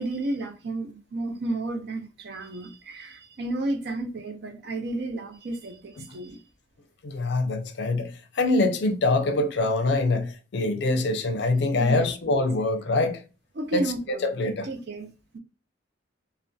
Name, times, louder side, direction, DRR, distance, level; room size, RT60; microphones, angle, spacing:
voice 1, 0.0-6.4 11.8-12.5 13.5-15.4, right 2 dB, 60° right, 0.5 m, -32 dB
voice 2, 7.0-13.2 13.7-14.7, left 2 dB, 60° left, 0.4 m, -24 dB
2.6 x 2.1 x 2.2 m
head